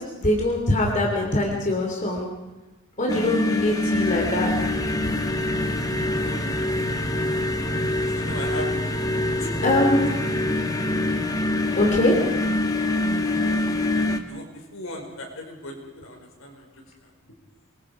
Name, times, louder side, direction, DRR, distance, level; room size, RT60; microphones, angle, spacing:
voice 1, 0.2-2.3 3.0-4.5 9.6-10.1 11.8-12.2, left 1 dB, 35° left, 0 dB, 3.3 m, -22 dB
sound 1, 3.1-14.2, left 1 dB, 15° left, 1.5 m, -25 dB
voice 2, 6.2-6.7 8.1-8.7 9.4-9.6 9.8-9.9 13.2-16.7, left 1 dB, 70° left, 2 dB, 5.2 m, -38 dB
26.0 x 22.0 x 5.0 m, 1.1 s
head